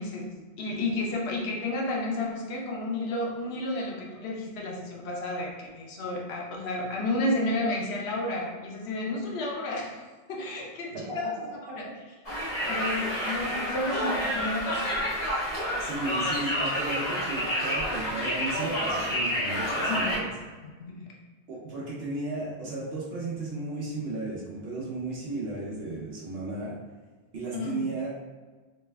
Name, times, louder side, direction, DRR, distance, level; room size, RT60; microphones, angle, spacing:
voice 1, 0.0-11.5 11.8-11.9 12.6-15.0 19.9-20.2 20.6-21.1 27.5-27.9, left 2 dB, 90° left, -2 dB, 0.9 m, -32 dB
Conversation, 12.2-20.2, equal, 40° left, 0.9 m, -29 dB
voice 2, 12.8-13.1 15.8-20.3 21.5-26.8 27.3-28.1, right 2 dB, 70° right, -5 dB, 1.0 m, -34 dB
3.2 x 2.2 x 3.2 m, 1.3 s
omnidirectional pair, 1.1 m